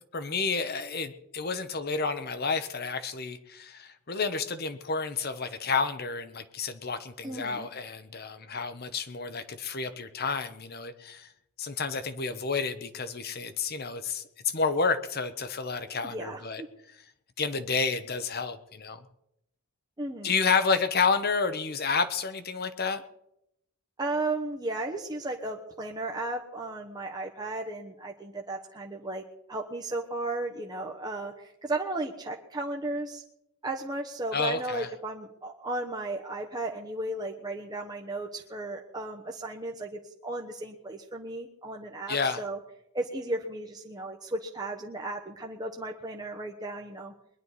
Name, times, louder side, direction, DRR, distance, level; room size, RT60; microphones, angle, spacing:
voice 1, 0.1-11.3 11.6-16.6 17.4-19.0 20.2-23.0 34.3-34.9 42.1-42.4, left 5 dB, 45° left, 11 dB, 1.0 m, -30 dB
voice 2, 7.2-7.7 16.0-16.7 20.0-20.4 24.0-29.2 29.5-33.2 33.6-42.6 42.9-47.1, right 2 dB, 20° right, 1 dB, 1.0 m, -35 dB
21.5 x 11.0 x 4.1 m, 0.81 s
head